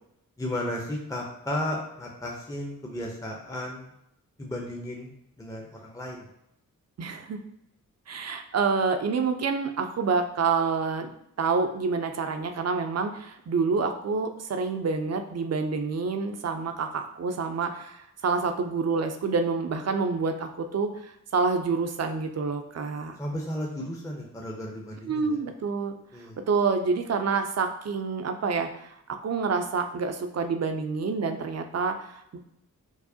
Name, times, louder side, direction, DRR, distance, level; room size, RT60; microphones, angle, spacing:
voice 1, 0.4-3.9 4.4-5.1 5.4-6.3 23.2-25.4 26.1-26.4, left 1 dB, 10° left, -1 dB, 0.6 m, -34 dB
voice 2, 7.0-7.4 8.1-23.2 25.1-26.0 26.5-32.4, right 4 dB, 50° right, 6 dB, 0.5 m, -28 dB
4.6 x 2.1 x 2.7 m, 0.79 s
cardioid pair, 50°, 34 cm